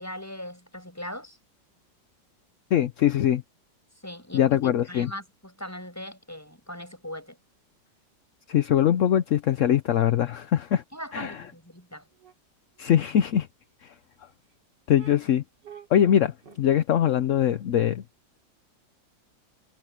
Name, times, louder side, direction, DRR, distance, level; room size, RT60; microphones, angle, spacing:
voice 1, 0.0-1.4 4.0-7.4 10.9-12.0, equal, 10° left, 6.5 m, -40 dB
voice 2, 2.7-3.4 4.3-5.1 8.5-10.8 11.1-11.4 12.8-13.5 13.8-13.9 14.9-15.4 15.9-18.0, left 10 dB, 60° left, 0.8 m, -22 dB
sound 1, 11.2-11.4 12.2-12.3 12.8-12.9 14.2-14.3 15.0-15.2 15.6-16.6, right 7 dB, 70° right, 3.2 m, -47 dB
omnidirectional pair, 2.0 m